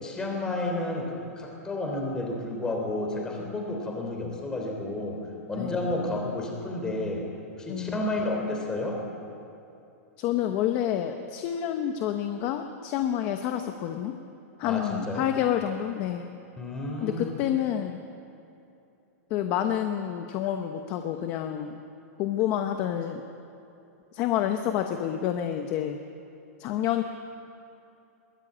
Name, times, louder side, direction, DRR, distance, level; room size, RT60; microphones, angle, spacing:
voice 1, 0.0-7.3 7.6-9.0 14.6-15.2 16.6-17.3, left 2 dB, 10° left, 1 dB, 3.3 m, -31 dB
voice 2, 7.7-8.1 10.2-14.1 14.6-16.2 17.0-18.0 19.3-21.8 22.2-23.2 24.1-26.0 26.6-27.0, left 11 dB, 25° left, 6 dB, 1.0 m, -28 dB
22.0 x 19.0 x 8.9 m, 2.8 s
supercardioid pair, 175°, 9 cm